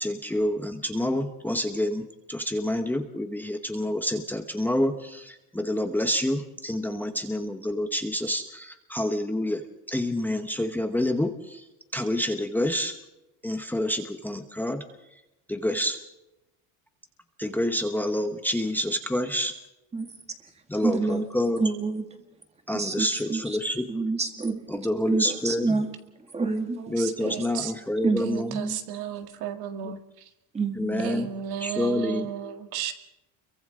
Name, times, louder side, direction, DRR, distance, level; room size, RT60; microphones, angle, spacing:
voice 1, 0.0-9.6 9.9-11.6 11.9-13.0 13.4-14.8 15.5-16.0 17.4-19.5 20.7-21.6 22.7-23.9 24.7-25.8 26.9-28.6 29.8-29.9 30.7-31.3 31.6-32.3, left 1 dB, 5° left, 6 dB, 1.1 m, -28 dB
voice 2, 20.8-21.2 21.6-22.0 22.7-23.4 23.9-24.6 25.1-25.9 26.3-26.8 27.3-27.4 28.0-28.7 30.5-31.2, right 3 dB, 15° right, 5 dB, 2.1 m, -27 dB
voice 3, 26.8-27.7 28.2-30.3 31.0-32.9, right 10 dB, 70° right, 7 dB, 1.9 m, -34 dB
29.5 x 23.5 x 3.8 m, 0.94 s
cardioid pair, 145°, 38 cm